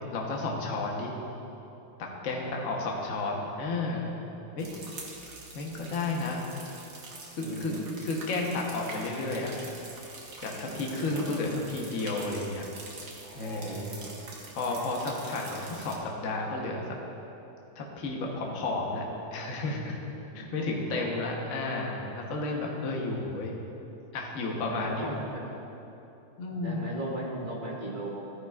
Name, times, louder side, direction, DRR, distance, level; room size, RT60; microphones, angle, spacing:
voice 1, 0.1-1.1 2.0-4.1 4.6-4.7 5.5-6.4 7.3-7.7 8.0-9.5 10.4-12.7 13.3-13.9 14.5-16.8 17.8-19.0 19.3-20.0 20.3-23.5 24.1-25.1 26.4-26.9, left 2 dB, 50° left, -1 dB, 1.0 m, -32 dB
voice 2, 2.3-2.8 7.4-7.9 10.6-11.2 13.2-14.1 20.2-21.3 24.6-25.4 26.5-28.1, right 1 dB, 25° right, -4 dB, 1.2 m, -39 dB
sound 1, 4.6-16.0, right 2 dB, 50° right, 1.6 m, -45 dB
13.5 x 9.6 x 2.4 m, 3.0 s
omnidirectional pair, 2.4 m